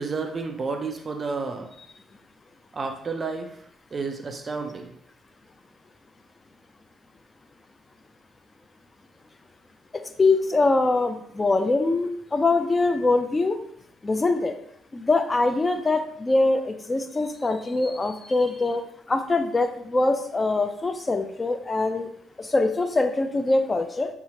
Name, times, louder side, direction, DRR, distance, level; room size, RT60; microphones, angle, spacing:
voice 1, 0.0-1.7 2.7-3.5 3.9-4.9, right 4 dB, 40° right, 5 dB, 0.5 m, -30 dB
voice 2, 10.2-13.6 14.0-14.5 14.9-18.8 19.1-22.1 22.4-24.1, left 3 dB, 30° left, 7 dB, 0.3 m, -23 dB
2.8 x 2.3 x 2.8 m, 0.70 s
hypercardioid pair, 50°, 0 cm